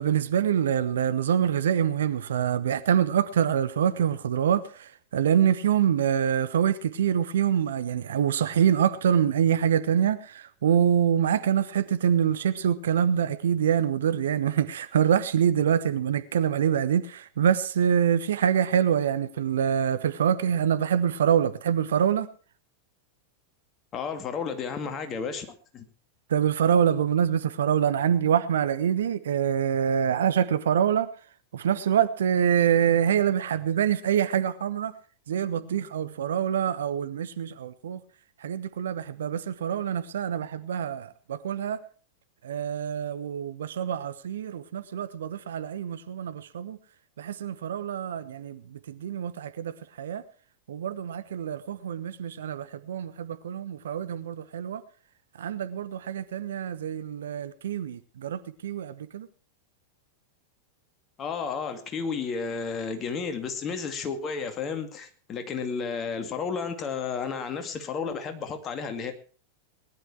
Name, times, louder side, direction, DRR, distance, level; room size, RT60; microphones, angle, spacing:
voice 1, 0.0-22.3 26.3-31.1 31.5-34.9 35.3-38.0 38.4-41.8 42.4-46.8 47.2-49.7 50.0-50.2 50.7-54.8 55.4-59.3, right 9 dB, 60° right, 1.0 m, -25 dB
voice 2, 23.9-25.8 61.2-69.1, left 5 dB, 30° left, 2.3 m, -32 dB
19.5 x 11.0 x 4.7 m
figure-of-eight pair, 90°, 0 cm